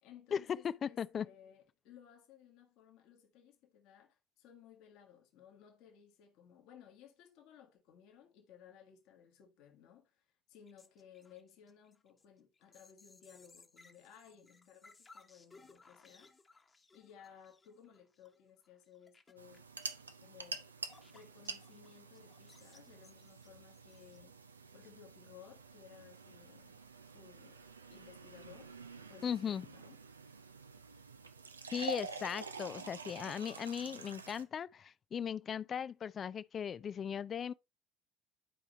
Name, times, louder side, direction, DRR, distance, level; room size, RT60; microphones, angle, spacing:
voice 1, 0.0-16.3 16.9-19.7 20.2-20.7 21.1-24.4 24.7-26.8 27.1-28.8 29.1-30.0, left 8 dB, 60° left, 1.5 m, -59 dB
voice 2, 0.8-1.3 29.2-29.7 31.7-37.5, left 8 dB, 40° left, 0.4 m, -38 dB
sound 1, 10.7-21.9 22.1-24.2, left 3 dB, 25° left, 1.2 m, -63 dB
sound 2, 19.4-34.4, right 4 dB, 90° right, 0.5 m, -48 dB
11.0 x 4.9 x 3.0 m
figure-of-eight pair, 60°, 0 cm